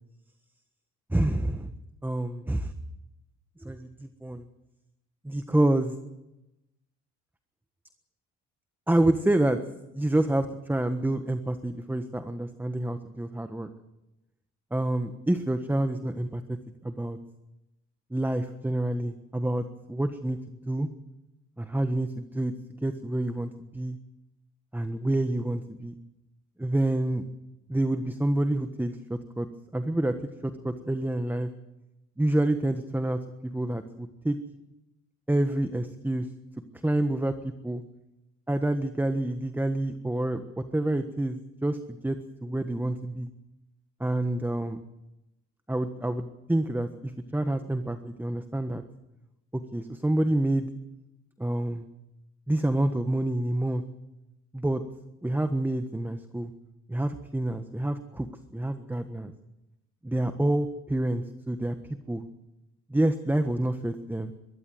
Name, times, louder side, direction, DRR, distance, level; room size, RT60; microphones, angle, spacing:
voice 1, 1.1-1.7 2.0-2.7 3.6-4.4 5.2-6.0 8.9-9.6 9.9-13.7 14.7-16.6 16.8-17.2 18.1-20.9 21.6-22.5 22.8-24.0 24.7-25.9 26.6-27.2 27.7-29.5 29.7-30.2 30.4-31.5 32.2-34.4 35.3-36.3 36.8-37.8 38.5-43.3 44.0-44.8 45.7-48.8 49.5-50.7 51.4-51.8 52.5-53.8 54.5-54.8 55.2-56.5 56.9-59.3 60.0-61.7 62.1-62.3 62.9-64.3, right 1 dB, 5° right, 8 dB, 1.4 m, -28 dB
22.0 x 15.5 x 7.9 m, 0.94 s
cardioid pair, 95°, 30 cm